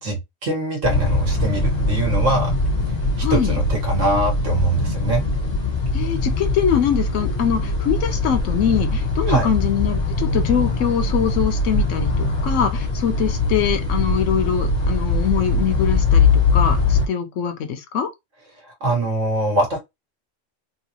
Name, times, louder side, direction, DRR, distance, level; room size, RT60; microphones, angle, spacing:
voice 1, 0.0-2.5 3.2-5.2 9.3-9.5 18.7-19.8, right 2 dB, 75° right, 2.0 m, -22 dB
sound 1, 0.8-17.0, left 3 dB, 20° left, 1.5 m, -21 dB
voice 2, 3.2-3.6 5.9-18.1, left 8 dB, 80° left, 1.1 m, -23 dB
3.9 x 2.5 x 2.9 m
omnidirectional pair, 1.3 m